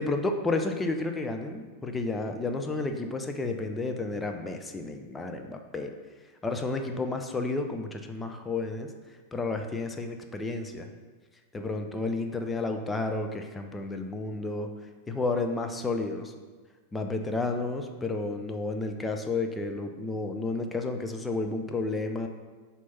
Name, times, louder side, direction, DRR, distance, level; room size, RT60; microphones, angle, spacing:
voice 1, 0.0-5.9 6.4-8.9 9.3-10.9 11.5-14.7 15.1-16.3 16.9-22.3, left 3 dB, 10° left, 5 dB, 0.5 m, -31 dB
6.1 x 2.8 x 5.5 m, 1.4 s
figure-of-eight pair, 90°, 0 cm